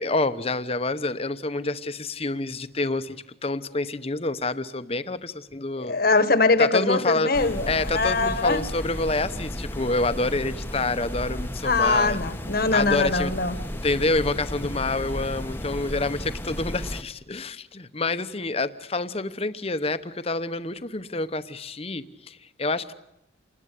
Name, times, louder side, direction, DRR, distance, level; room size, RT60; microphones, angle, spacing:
voice 1, 0.0-3.2 3.4-6.0 6.6-7.4 7.6-12.2 12.7-13.4 13.7-22.9, left 2 dB, 30° left, 1.0 m, -27 dB
voice 2, 5.8-8.6 11.6-13.6, left 3 dB, 50° left, 1.4 m, -22 dB
sound 1, 7.3-17.0, equal, 10° left, 1.0 m, -34 dB
28.0 x 20.0 x 8.4 m
head